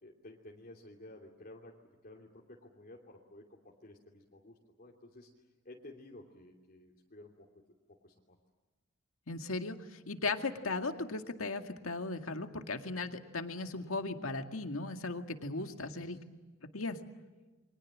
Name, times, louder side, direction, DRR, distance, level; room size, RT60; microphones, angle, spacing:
voice 1, 0.0-1.8 2.0-5.3 5.6-7.5 7.9-8.4 15.8-16.2, left 1 dB, 45° left, -1 dB, 2.9 m, -54 dB
voice 2, 9.3-16.2 16.7-17.0, left 3 dB, 80° left, 6 dB, 2.1 m, -37 dB
29.5 x 24.0 x 7.5 m, 1.3 s
head